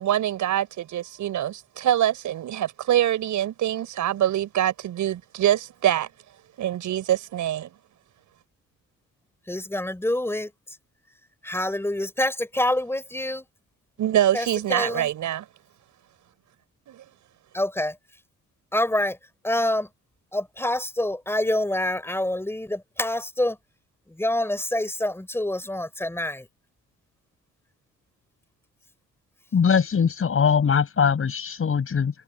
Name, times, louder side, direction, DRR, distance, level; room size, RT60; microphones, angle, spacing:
voice 1, 0.0-6.1 6.6-7.7 14.0-15.5 16.9-17.0, right 12 dB, 75° right, 5.9 m, -24 dB
voice 2, 9.5-10.5 11.4-13.4 14.3-15.1 17.5-17.9 18.7-19.2 19.4-19.9 20.3-23.6 24.2-26.4, left 1 dB, 10° left, 4.5 m, -26 dB
voice 3, 29.5-32.1, left 6 dB, 45° left, 7.7 m, -21 dB
cardioid pair, 90°, 30 cm